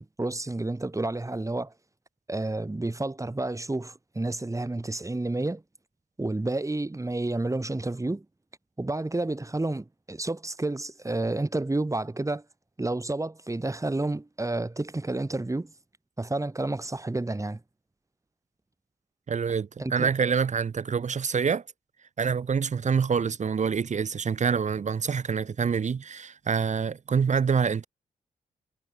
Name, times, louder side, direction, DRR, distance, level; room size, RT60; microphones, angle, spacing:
voice 1, 0.0-1.7 2.3-5.6 6.2-8.2 8.8-12.4 12.8-15.7 16.2-17.6 19.8-20.3, right 2 dB, 20° right, 2.8 m, -30 dB
voice 2, 19.3-21.6 22.2-27.9, right 6 dB, 50° right, 1.1 m, -26 dB
cardioid pair, 50°, 15 cm